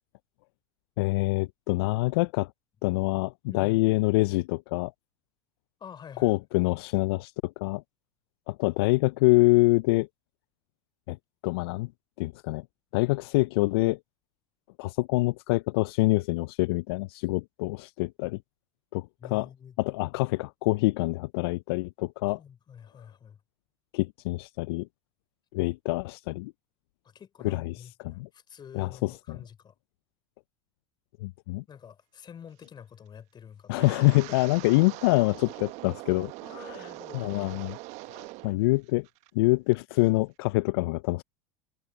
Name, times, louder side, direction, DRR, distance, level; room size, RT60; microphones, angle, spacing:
voice 1, 1.0-2.5 2.8-4.9 6.2-7.8 8.5-10.1 11.1-11.2 11.4-11.9 12.2-12.6 12.9-14.0 14.8-18.4 18.9-19.5 19.8-22.4 23.9-24.9 25.5-26.5 27.4-28.3 28.7-29.4 31.2-31.6 33.7-36.9 37.1-37.8 38.1-39.1 39.3-41.2, left 22 dB, 70° left, 0.4 m, -26 dB
voice 2, 3.5-3.9 5.8-6.4 19.2-19.8 22.3-23.4 27.0-29.7 31.7-33.9 34.3-34.4 36.4-37.6, left 8 dB, 35° left, 4.2 m, -48 dB
Wind, 33.7-38.6 38.9-39.3 39.7-40.0, right 21 dB, 60° right, 1.2 m, -42 dB
hypercardioid pair, 85°, 13 cm